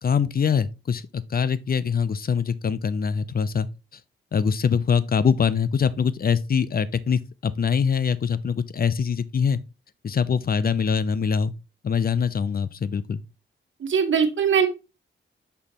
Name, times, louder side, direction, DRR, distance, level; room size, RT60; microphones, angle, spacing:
voice 1, 0.0-3.7 4.3-9.6 10.0-11.5 11.8-13.2, left 6 dB, 45° left, 0.6 m, -23 dB
voice 2, 13.8-14.7, right 7 dB, 65° right, 1.4 m, -21 dB
6.4 x 5.6 x 3.0 m
cardioid pair, 75°, 21 cm